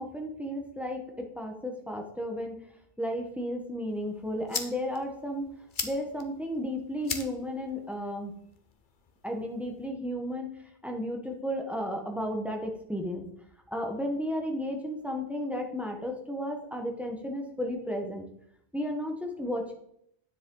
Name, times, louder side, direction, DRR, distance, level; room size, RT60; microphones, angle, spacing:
voice 1, 0.0-2.6 3.0-5.5 5.8-8.3 9.2-10.5 10.8-13.2 13.7-18.2 18.7-19.7, equal, ahead, 2 dB, 1.1 m, -33 dB
sound 1, 3.9-9.9, left 5 dB, 50° left, 1.0 m, -41 dB
9.7 x 7.2 x 3.8 m, 0.72 s
omnidirectional pair, 1.2 m